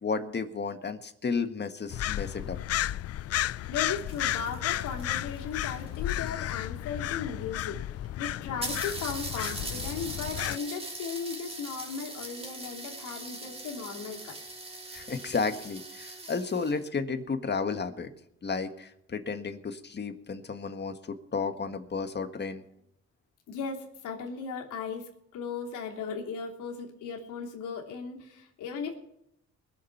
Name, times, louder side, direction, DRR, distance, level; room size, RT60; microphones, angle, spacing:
voice 1, 0.0-2.6 14.9-18.1 18.4-22.6, left 4 dB, 35° left, 8 dB, 1.6 m, -32 dB
sound 1, 1.9-10.6, left 13 dB, 55° left, 0.4 m, -33 dB
sound 2, 3.6-6.4 7.3-7.4 7.6-7.7 8.0-8.1 8.6-16.8, right 2 dB, 20° right, 3.2 m, -40 dB
voice 2, 3.7-7.8 8.2-14.4 23.5-29.0, left 6 dB, 90° left, 0 dB, 2.9 m, -37 dB
21.5 x 7.2 x 5.9 m, 0.77 s
cardioid pair, 90°, 30 cm